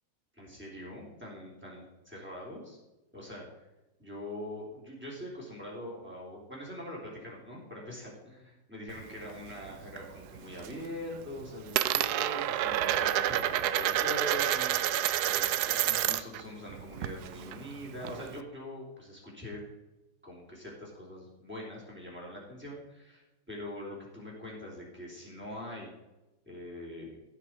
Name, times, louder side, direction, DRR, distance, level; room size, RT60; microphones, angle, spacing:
voice 1, 0.3-2.8 3.1-3.4 4.0-19.6 20.2-25.9 26.5-27.2, left 1 dB, 5° right, -4 dB, 3.5 m, -43 dB
Coin (dropping), 8.9-10.0 10.4-10.9 11.1-16.4 16.7-18.4, right 12 dB, 80° right, 0.8 m, -29 dB
16.0 x 6.1 x 4.7 m, 1.0 s
omnidirectional pair, 2.2 m